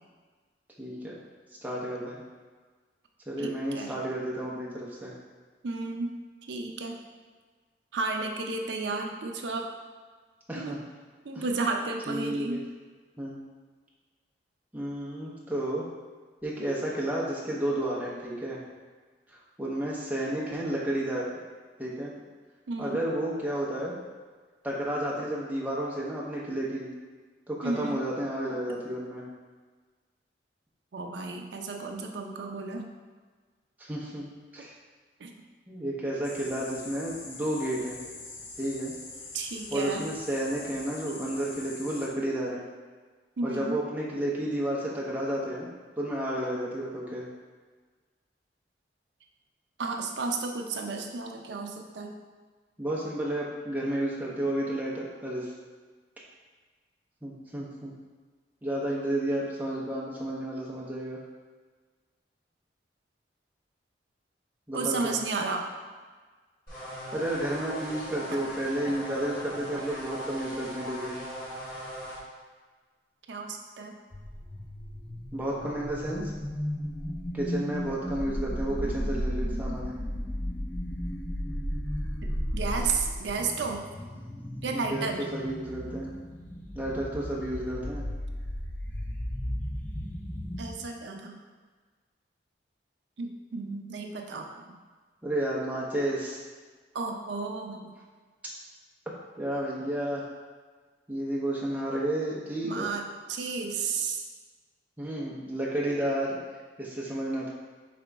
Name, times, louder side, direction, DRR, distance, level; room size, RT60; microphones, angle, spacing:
voice 1, 0.8-1.2 1.6-2.2 3.3-5.2 10.5-10.8 11.3-11.4 12.1-12.6 13.2-13.4 14.7-15.9 16.4-18.6 19.3-21.2 21.8-22.1 22.8-24.0 24.6-26.9 27.5-29.2 33.8-34.3 34.5-34.7 35.7-38.0 38.6-38.9 39.7-42.6 43.4-45.7 46.0-47.3 52.8-55.5 57.2-57.9 58.6-61.2 64.7-65.2 67.1-71.2 75.3-76.3 77.3-79.9 84.7-86.1 86.7-88.1 95.2-96.4 99.4-100.2 101.1-102.9 105.0-106.4 106.8-107.5, right 1 dB, 10° right, -5 dB, 0.7 m, -31 dB
voice 2, 3.4-3.9 5.6-6.1 6.5-7.0 7.9-9.7 10.5-10.8 11.2-12.6 22.7-23.0 27.6-28.0 30.9-32.9 35.2-35.3 39.3-40.0 43.4-43.8 49.8-52.1 64.7-65.7 73.3-74.0 82.5-83.8 84.6-85.2 90.6-91.4 93.2-94.8 96.9-97.9 102.6-104.3, right 4 dB, 75° right, 3 dB, 0.5 m, -33 dB
sound 1, 36.2-42.1, left 3 dB, 90° left, 0.7 m, -44 dB
sound 2, 66.7-72.2, equal, 50° left, 1.5 m, -39 dB
sound 3, 74.1-90.7, equal, 10° left, 0.3 m, -34 dB
5.0 x 2.9 x 3.4 m, 1.4 s
head